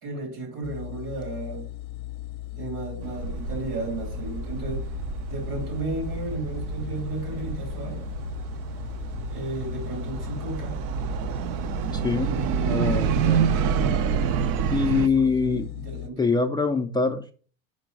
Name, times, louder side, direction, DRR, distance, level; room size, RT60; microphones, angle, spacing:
voice 1, 0.0-1.7 2.5-4.8 5.3-8.0 9.3-10.8 12.1-14.0 14.7-16.3, right 3 dB, 85° right, 2 dB, 3.8 m, -34 dB
sound 1, 0.6-16.1, left 15 dB, 55° left, 0.6 m, -37 dB
sound 2, 3.0-15.1, right 7 dB, 65° right, 0.7 m, -28 dB
voice 2, 11.9-13.5 14.7-15.7 16.2-17.3, left 4 dB, 10° left, 3 dB, 0.3 m, -24 dB
5.2 x 5.2 x 4.6 m, 0.41 s
hypercardioid pair, 95°, 45 cm